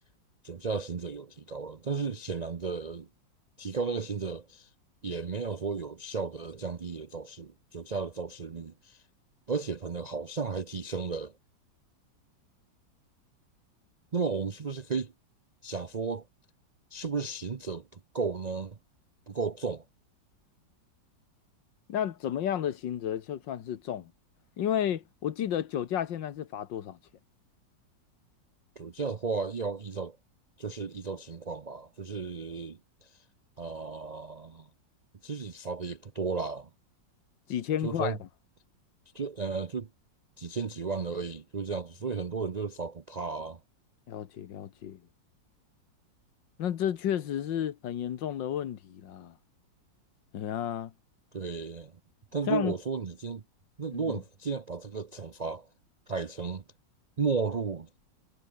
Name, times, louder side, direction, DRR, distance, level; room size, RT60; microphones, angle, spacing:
voice 1, 0.4-3.1 3.6-4.7 5.0-9.0 9.5-11.3 14.1-15.1 15.6-16.3 16.9-18.8 19.3-19.8 28.8-30.2 30.6-33.2 33.6-34.7 35.2-36.7 37.8-38.2 39.1-39.9 40.4-43.6 51.3-51.9 52.3-53.4 53.8-55.7 56.1-56.6 57.2-57.9, right 4 dB, 90° right, 0.3 m, -34 dB
voice 2, 21.9-24.1 24.6-27.0 37.5-38.3 44.1-45.0 46.6-49.4 50.3-50.9 52.5-52.7 53.9-54.2, left 10 dB, 80° left, 1.9 m, -32 dB
omnidirectional pair, 2.0 m